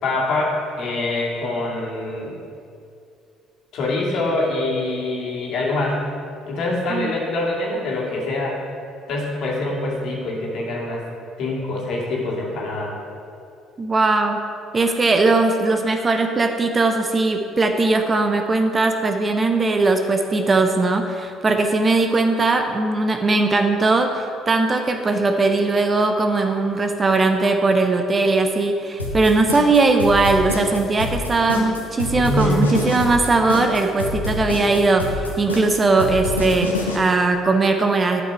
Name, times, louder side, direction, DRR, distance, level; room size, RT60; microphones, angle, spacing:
voice 1, 0.0-2.4 3.7-6.1 6.5-8.6 9.1-11.1 11.4-12.9 32.1-32.8, left 2 dB, 55° left, -3 dB, 2.3 m, -24 dB
voice 2, 13.8-14.5 14.7-38.2, right 3 dB, 30° right, 6 dB, 0.7 m, -19 dB
sound 1, 29.0-37.0, left 2 dB, 90° left, 1.0 m, -26 dB
11.5 x 5.6 x 4.7 m, 2.5 s
figure-of-eight pair, 50°, 0 cm